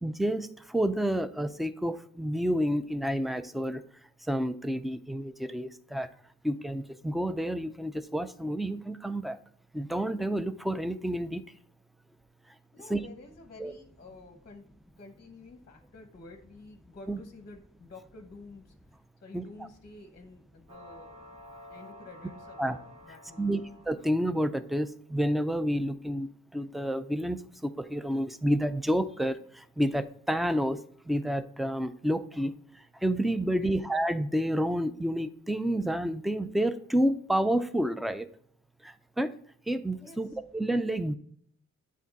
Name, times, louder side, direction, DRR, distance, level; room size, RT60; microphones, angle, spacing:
voice 1, 0.0-3.8 4.3-6.1 6.4-9.4 9.7-11.4 12.9-13.0 13.6-13.7 17.1-17.2 19.3-19.4 22.6-22.8 23.4-30.8 31.1-32.5 33.0-38.3 38.8-39.4 39.7-40.3 40.5-41.2, equal, ahead, 12 dB, 0.4 m, -29 dB
voice 2, 12.7-14.7 15.0-21.3 21.7-22.8 23.0-23.7 33.6-33.8 40.0-40.4, left 3 dB, 35° left, 5 dB, 0.9 m, -50 dB
sound 1, 20.7-24.7, left 1 dB, 80° right, 2.2 m, -50 dB
8.4 x 3.7 x 4.0 m, 0.62 s
cardioid pair, 90°, 29 cm